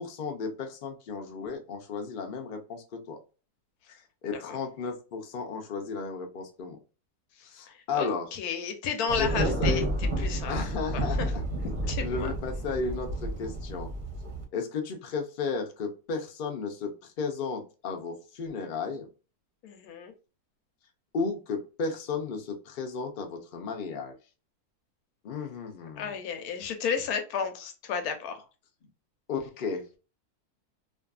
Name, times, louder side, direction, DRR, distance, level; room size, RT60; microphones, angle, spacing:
voice 1, 0.0-3.2 3.9-6.8 7.4-8.3 9.0-9.9 10.5-11.2 12.0-13.9 14.5-19.1 21.1-24.1 25.2-26.1 29.3-29.8, left 4 dB, 60° left, 3 dB, 0.5 m, -34 dB
voice 2, 8.0-9.8 10.2-10.6 10.9-11.0 11.6-12.3 19.6-20.1 26.0-28.4, left 6 dB, 80° left, 6 dB, 1.1 m, -32 dB
Thunder, 9.1-14.4, right 1 dB, 45° right, 0.7 m, -30 dB
2.6 x 2.5 x 2.3 m, 0.33 s
omnidirectional pair, 1.6 m